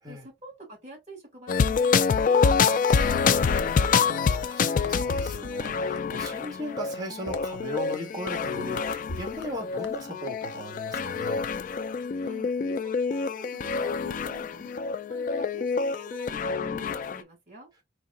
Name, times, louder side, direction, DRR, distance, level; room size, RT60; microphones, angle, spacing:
voice 1, 0.1-1.8 2.1-3.4 12.2-14.7 15.1-17.7, right 1 dB, 40° right, 3.1 m, -47 dB
sound 1, 1.5-17.2, left 5 dB, 50° left, 0.3 m, -26 dB
sound 2, 2.5-11.1, left 2 dB, 80° left, 0.8 m, -45 dB
voice 2, 4.0-11.5, equal, 25° right, 2.1 m, -38 dB
4.6 x 3.1 x 2.6 m
head